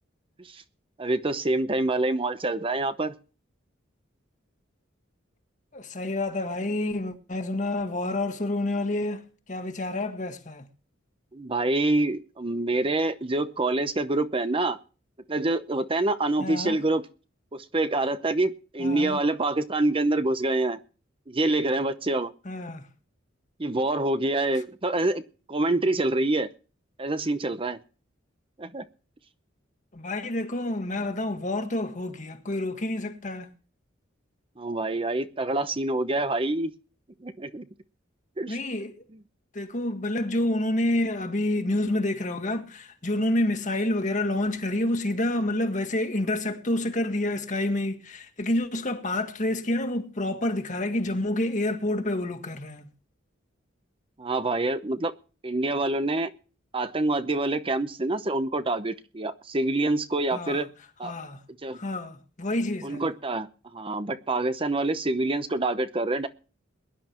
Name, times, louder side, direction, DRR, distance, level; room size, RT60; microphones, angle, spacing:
voice 1, 1.0-3.1 11.3-14.8 15.3-17.0 17.5-20.8 21.3-22.3 23.6-25.2 25.5-26.5 27.0-27.8 28.6-28.8 34.6-36.7 37.2-37.6 38.4-38.6 54.2-55.1 55.4-56.3 56.7-60.7 61.0-61.1 61.6-61.8 62.8-63.5 63.7-66.3, right 2 dB, 30° right, 0.8 m, -26 dB
voice 2, 5.7-9.2 9.5-10.7 16.4-16.8 18.8-19.2 22.5-22.9 29.9-33.5 38.5-39.0 39.5-52.9 60.3-60.6 61.0-61.4 61.7-63.0, left 1 dB, 40° left, 1.7 m, -28 dB
22.0 x 11.0 x 3.0 m
head